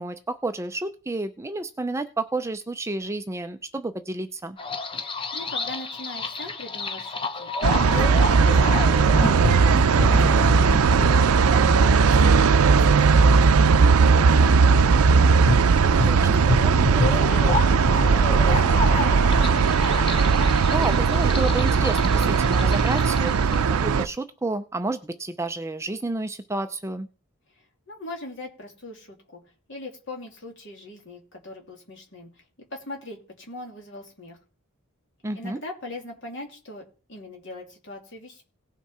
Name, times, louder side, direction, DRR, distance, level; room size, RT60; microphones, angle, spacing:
voice 1, 0.0-4.6 16.0-16.2 20.7-27.1 35.2-35.6, right 2 dB, 15° right, 9 dB, 0.4 m, -30 dB
sound 1, 4.6-23.6, left 3 dB, 25° left, 0.8 m, -30 dB
voice 2, 4.9-15.1 15.5-19.2 27.6-29.4 29.7-32.4 32.7-34.4 35.3-38.4, left 1 dB, 55° left, 1 dB, 2.7 m, -41 dB
sound 2, 7.6-24.1, right 5 dB, 80° right, 0.5 m, -18 dB
17.5 x 5.9 x 4.3 m, 0.37 s
head